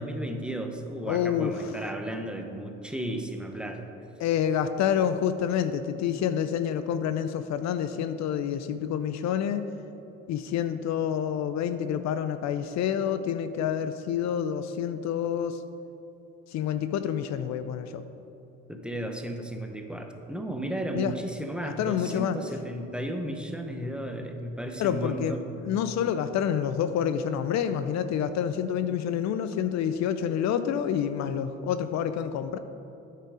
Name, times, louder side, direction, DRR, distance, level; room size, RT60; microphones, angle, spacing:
voice 1, 0.0-3.8 18.7-25.4, right 1 dB, 5° right, 4 dB, 0.9 m, -34 dB
voice 2, 1.1-1.7 4.2-9.6 10.3-15.6 16.5-18.0 20.9-21.1 21.6-22.4 24.8-32.6, left 9 dB, 65° left, 11 dB, 0.5 m, -28 dB
8.6 x 5.6 x 4.9 m, 3.0 s
supercardioid pair, 75°, 30 cm